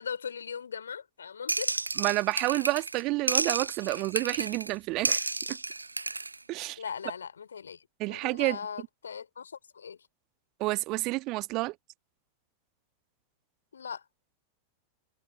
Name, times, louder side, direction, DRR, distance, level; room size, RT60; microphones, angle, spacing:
voice 1, 0.0-1.7 6.8-10.0 13.7-14.0, left 7 dB, 70° left, 3.9 m, -39 dB
sound 1, 1.5-3.0 3.3-4.7 5.0-6.4, right 3 dB, 80° right, 0.4 m, -31 dB
voice 2, 2.0-5.3 6.5-6.8 8.0-8.6 10.6-11.7, right 21 dB, 40° right, 1.9 m, -29 dB
figure-of-eight pair, 90°, 0 cm